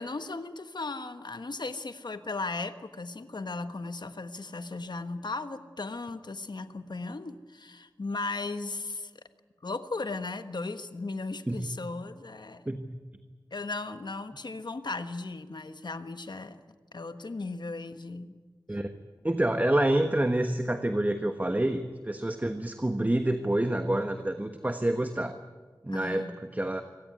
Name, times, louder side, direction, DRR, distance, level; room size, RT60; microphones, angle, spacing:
voice 1, 0.0-9.1 9.6-12.6 13.5-16.6 16.9-18.4 25.9-26.4, left 3 dB, 70° left, 9 dB, 1.3 m, -36 dB
voice 2, 12.7-13.0 18.7-18.9 19.2-25.4 25.8-26.8, right 1 dB, 20° right, 7 dB, 1.3 m, -28 dB
24.5 x 17.0 x 9.7 m, 1.4 s
wide cardioid pair, 70°, 8 cm